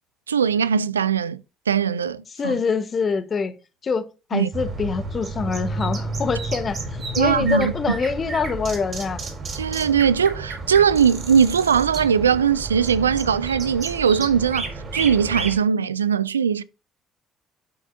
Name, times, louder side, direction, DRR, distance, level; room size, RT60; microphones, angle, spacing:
voice 1, 0.3-1.4 1.7-2.6 4.3-4.5 7.2-7.7 9.5-16.6, right 7 dB, 90° right, 0.3 m, -20 dB
voice 2, 2.4-3.5 3.8-9.2, left 5 dB, 40° left, 1.3 m, -25 dB
sound 1, 4.5-15.5, right 3 dB, 45° right, 4.5 m, -31 dB
12.5 x 6.5 x 2.7 m
hypercardioid pair, 50°, 0 cm